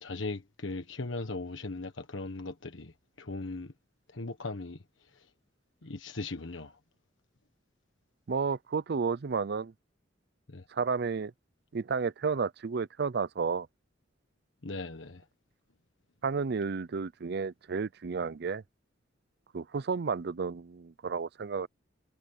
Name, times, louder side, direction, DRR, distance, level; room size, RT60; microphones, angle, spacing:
voice 1, 0.0-2.9 3.2-3.7 4.1-4.8 5.8-6.7 10.5-10.6 14.6-15.2, left 3 dB, 85° left, 1.4 m, -38 dB
voice 2, 8.3-9.7 10.7-11.3 11.7-13.7 16.2-18.6 19.5-21.7, right 5 dB, 60° right, 0.5 m, -32 dB
head